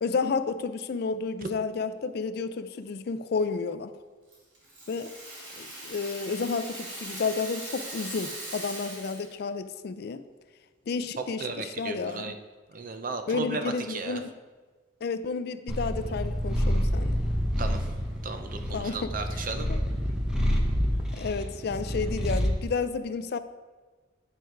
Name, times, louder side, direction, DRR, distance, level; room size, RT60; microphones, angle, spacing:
voice 1, 0.0-3.9 4.9-5.1 5.6-10.2 10.9-12.3 13.3-14.4 15.0-17.2 18.7-19.8 21.1-23.4, left 4 dB, 60° left, 11 dB, 0.4 m, -31 dB
Rattle (instrument), 4.3-9.4, right 1 dB, 85° right, 2.4 m, -40 dB
voice 2, 11.4-12.3 12.7-14.2 17.6-17.8 18.2-19.7, right 4 dB, 50° right, 7 dB, 0.6 m, -35 dB
Purr, 15.7-22.6, equal, 5° right, 0.9 m, -28 dB
9.1 x 4.6 x 4.6 m, 1.4 s
head